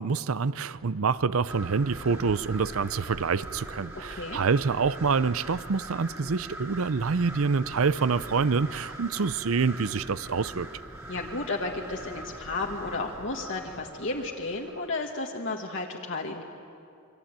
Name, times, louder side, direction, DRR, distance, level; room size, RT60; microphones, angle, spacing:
voice 1, 0.0-10.7, right 5 dB, 75° right, 17 dB, 0.6 m, -26 dB
sound 1, 1.5-15.1, right 1 dB, 10° right, 2.7 m, -42 dB
voice 2, 4.1-4.4 11.1-16.4, left 3 dB, 60° left, 0 dB, 1.7 m, -33 dB
27.5 x 24.0 x 9.0 m, 2.7 s
head